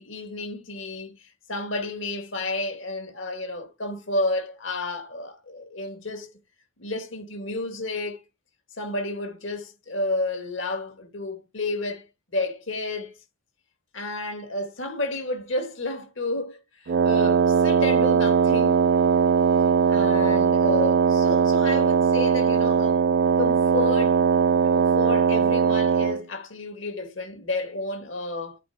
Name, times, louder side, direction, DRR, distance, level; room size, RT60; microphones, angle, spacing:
voice 1, 0.0-6.3 6.8-8.2 8.8-12.0 12.3-13.1 13.9-18.9 19.9-23.0 23.4-24.2 24.6-28.6, left 2 dB, 65° left, 2.0 m, -31 dB
Wind instrument woodwind instrument, 16.9-26.2, right 6 dB, 50° right, 0.3 m, -20 dB
8.4 x 3.5 x 4.8 m
head